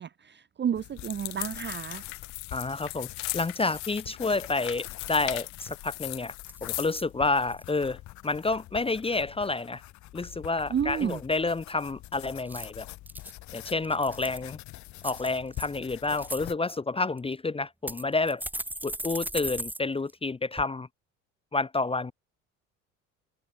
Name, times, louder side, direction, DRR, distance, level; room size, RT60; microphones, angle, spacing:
voice 1, 0.0-2.0 10.7-11.2, right 8 dB, 30° right, 1.0 m, -31 dB
sound 1, 0.7-16.6, left 16 dB, 50° left, 1.0 m, -45 dB
sound 2, 1.0-7.0, left 26 dB, 70° left, 0.5 m, -38 dB
voice 2, 2.5-3.1 3.3-6.3 6.6-8.0 8.2-9.8 10.1-12.9 13.5-14.6 15.0-18.4 18.8-20.9 21.5-22.1, left 3 dB, 15° left, 0.9 m, -29 dB
sound 3, 5.3-5.4 5.7-6.0 6.5-7.0 7.5-7.9 12.3-13.3 13.8-14.5 15.0-15.7 16.0-16.4 17.2-17.3 17.9-19.8 20.1-20.2 20.6-20.7, right 1 dB, 5° right, 1.7 m, -37 dB
figure-of-eight pair, 60°, 38 cm